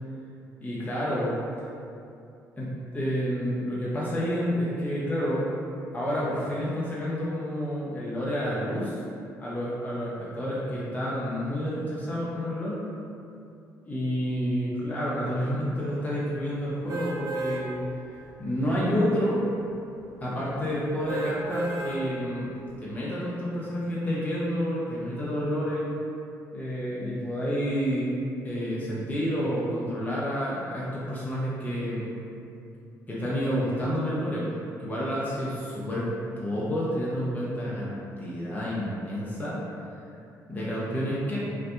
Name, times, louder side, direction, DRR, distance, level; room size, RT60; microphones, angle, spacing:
voice 1, 0.6-1.3 2.6-5.5 5.9-9.0 9.4-12.8 13.9-17.8 18.4-19.4 20.2-22.5 22.8-25.9 26.5-28.1 28.4-32.1 33.1-34.5 34.8-36.1 36.4-39.6 40.5-41.4, equal, 20° left, -8 dB, 0.6 m, -29 dB
sound 1, 16.9-17.6 18.1-18.3 21.1-22.0 22.6-22.7, right 3 dB, 45° right, 0.7 m, -32 dB
2.6 x 2.1 x 2.5 m, 2.6 s
hypercardioid pair, 50°, 9 cm